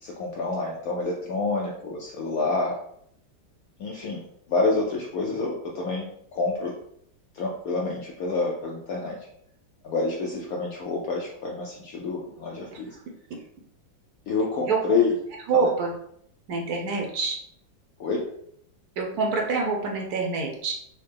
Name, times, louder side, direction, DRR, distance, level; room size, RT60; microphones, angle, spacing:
voice 1, 0.0-2.8 3.8-4.2 4.5-6.1 6.3-6.7 7.3-9.2 9.8-12.9 14.3-15.1 15.5-15.7 18.0-18.2, left 3 dB, 75° left, -2 dB, 0.8 m, -27 dB
voice 2, 15.5-15.9 16.5-17.4 19.0-20.7, right 4 dB, 70° right, 0 dB, 0.9 m, -26 dB
4.2 x 2.1 x 3.3 m, 0.70 s
omnidirectional pair, 2.1 m